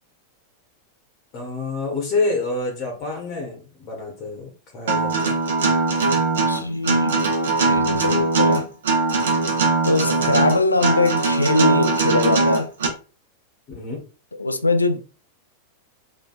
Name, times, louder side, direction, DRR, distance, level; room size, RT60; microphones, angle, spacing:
voice 1, 1.3-5.4 13.7-14.0, left 3 dB, 40° left, 0.9 m, -27 dB
Acoustic guitar, 4.9-12.9, right 3 dB, 65° right, 0.7 m, -20 dB
voice 2, 6.5-7.2 7.7-8.7 9.8-12.7 14.3-15.0, left 2 dB, 80° left, 0.3 m, -21 dB
2.8 x 2.5 x 2.3 m
figure-of-eight pair, 90°, 0 cm